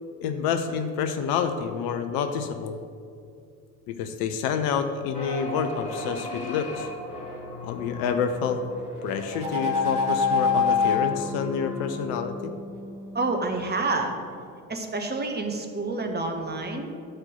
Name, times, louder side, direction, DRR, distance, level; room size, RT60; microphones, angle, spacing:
voice 1, 0.2-2.8 3.9-6.9 7.6-8.6 9.0-12.5, left 7 dB, 55° left, 8 dB, 0.8 m, -28 dB
sound 1, 5.1-13.9, left 1 dB, 85° left, 1.7 m, -37 dB
sound 2, 6.0-6.7 9.1-11.0, left 5 dB, 80° right, 1.3 m, -25 dB
voice 2, 13.1-14.2 14.7-16.9, right 3 dB, 20° right, 4 dB, 1.4 m, -28 dB
11.0 x 4.4 x 7.8 m, 2.4 s
figure-of-eight pair, 55°, 45 cm